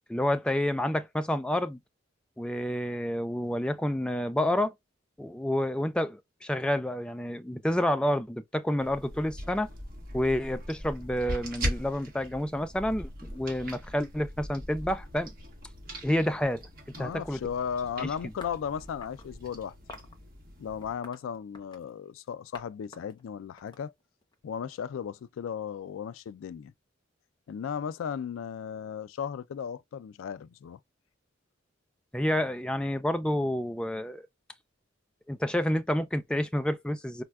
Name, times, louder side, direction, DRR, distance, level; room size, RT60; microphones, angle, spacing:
voice 1, 0.1-1.8 2.4-4.7 5.2-9.7 10.1-15.3 16.0-16.6 17.0-17.4 18.0-18.1 32.1-34.2 35.3-37.2, left 1 dB, 5° left, 0.3 m, -29 dB
sound 1, 8.8-20.9, equal, 50° right, 1.2 m, -40 dB
voice 2, 17.0-19.8 20.6-23.9 24.4-26.7 27.5-30.8, left 7 dB, 90° left, 0.3 m, -36 dB
sound 2, 18.4-19.3 19.9-20.2 20.8-21.9 22.5-22.7 22.9-24.3, left 3 dB, 25° left, 0.7 m, -48 dB
4.1 x 2.1 x 2.2 m
head